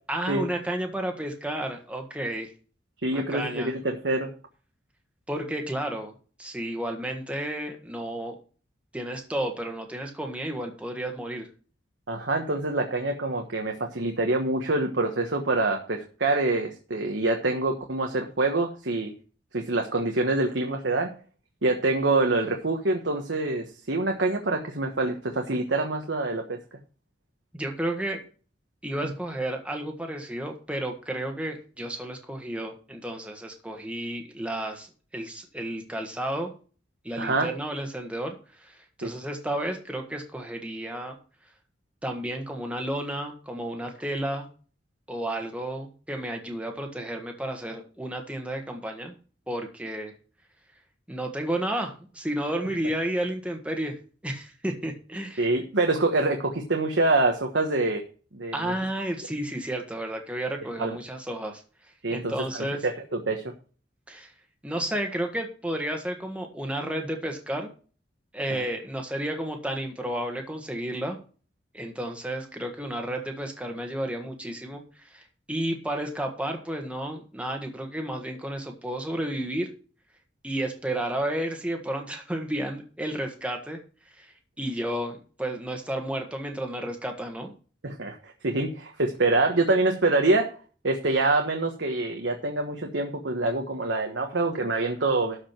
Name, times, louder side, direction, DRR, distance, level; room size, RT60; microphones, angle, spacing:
voice 1, 0.1-2.5 3.1-3.7 5.3-8.4 8.9-11.5 27.5-28.2 28.8-34.9 35.1-36.5 37.0-41.2 42.0-44.5 45.1-49.1 49.5-50.1 51.1-54.0 54.2-55.5 58.5-61.6 62.1-62.8 64.1-64.3 64.6-67.7 68.3-71.2 71.7-75.2 75.5-79.7 80.4-83.8 84.2-84.3 84.6-87.5, right 1 dB, 5° right, 2 dB, 1.5 m, -32 dB
voice 2, 3.0-4.3 12.1-19.1 19.5-21.1 21.6-26.6 37.2-37.5 39.0-39.1 55.4-58.0 58.3-58.7 60.8-61.0 62.0-63.5 68.5-68.6 87.8-90.5 90.8-95.4, right 2 dB, 80° right, 3 dB, 1.3 m, -26 dB
12.5 x 5.1 x 5.9 m, 0.39 s
head